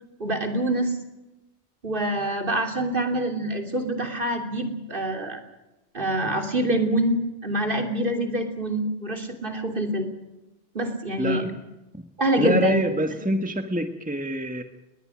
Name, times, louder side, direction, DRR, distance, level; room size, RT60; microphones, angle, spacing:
voice 1, 0.2-1.0 1.8-5.4 5.9-10.1 10.7-11.5 12.2-12.9, right 1 dB, 50° right, 4 dB, 3.3 m, -25 dB
voice 2, 11.2-11.5 11.9-12.0 12.4-14.6, right 1 dB, 5° right, 6 dB, 1.5 m, -25 dB
21.0 x 20.0 x 6.4 m, 1.0 s
omnidirectional pair, 1.2 m